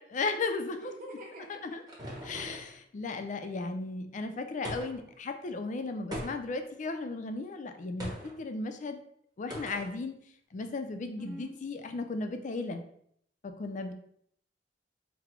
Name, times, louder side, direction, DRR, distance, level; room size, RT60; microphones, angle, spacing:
voice 1, 0.0-0.9 1.5-1.8 2.2-8.1 8.4-9.0 9.4-10.2 10.5-12.8 13.6-13.9, left 3 dB, 45° left, 7 dB, 0.4 m, -35 dB
voice 2, 0.8-1.5 11.2-11.5, right 1 dB, 50° right, -2 dB, 0.6 m, -44 dB
sound 1, 1.2-2.8 4.6-5.1 6.1-6.7 8.0-8.4 9.5-10.0, equal, 25° right, 1.0 m, -40 dB
4.0 x 2.1 x 4.4 m, 0.67 s
head